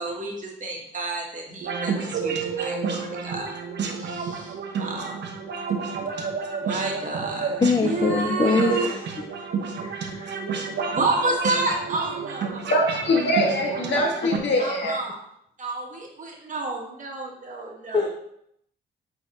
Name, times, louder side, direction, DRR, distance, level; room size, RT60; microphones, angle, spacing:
voice 1, 0.0-3.5 3.9-5.4 6.6-8.9 10.9-12.6 13.7-13.8 14.6-15.2 15.6-18.1, right 2 dB, 40° right, 0 dB, 1.6 m, -30 dB
sound 1, 1.6-14.4, right 5 dB, 60° right, 1.0 m, -30 dB
voice 2, 7.6-9.0 9.8-10.4 13.9-14.0 17.9-18.1, left 4 dB, 20° left, 5 dB, 0.5 m, -24 dB
voice 3, 12.7-15.0, left 1 dB, 65° left, -1 dB, 1.8 m, -23 dB
8.4 x 3.9 x 3.0 m, 0.73 s
cardioid pair, 90°, 20 cm